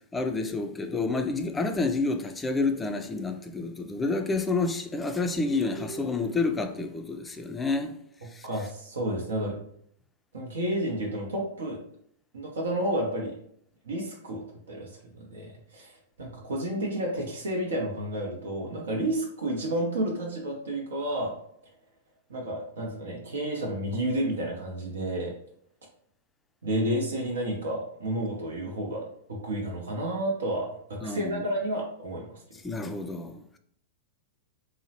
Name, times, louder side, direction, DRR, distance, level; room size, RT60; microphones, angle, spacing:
voice 1, 0.1-8.0 8.3-8.5 31.0-31.4 32.6-33.6, left 3 dB, 15° left, 0.3 m, -29 dB
sound 1, 4.1-7.9, equal, 45° right, 0.9 m, -46 dB
voice 2, 8.2-9.6 10.3-11.8 12.3-13.4 13.8-21.3 22.3-25.3 26.6-32.4, right 1 dB, 80° right, 0.6 m, -31 dB
2.8 x 2.0 x 2.8 m
hypercardioid pair, 105°, 0 cm